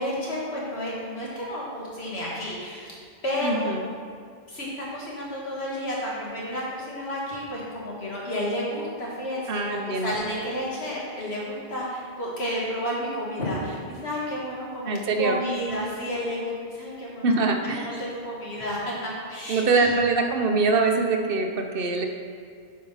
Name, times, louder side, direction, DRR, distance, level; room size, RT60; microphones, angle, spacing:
voice 1, 0.0-3.0 3.2-3.7 4.5-17.4 17.8-19.9, equal, 80° left, -5 dB, 2.3 m, -31 dB
voice 2, 3.4-3.9 9.5-10.1 14.8-15.4 17.2-17.9 19.5-22.1, right 3 dB, 65° right, 4 dB, 0.9 m, -23 dB
8.5 x 5.2 x 5.6 m, 2.1 s
omnidirectional pair, 1.0 m